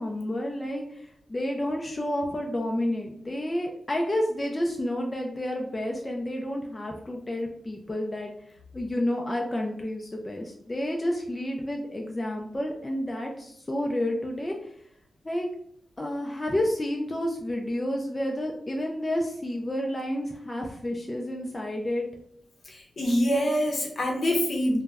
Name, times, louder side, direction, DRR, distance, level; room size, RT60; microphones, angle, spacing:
voice 1, 0.0-8.3 8.7-14.7 15.2-15.5 16.0-22.1, left 1 dB, 20° left, 0 dB, 0.3 m, -30 dB
voice 2, 22.7-24.8, equal, 60° left, 0 dB, 0.7 m, -25 dB
2.2 x 2.0 x 3.4 m, 0.68 s
cardioid pair, 80°, 0 cm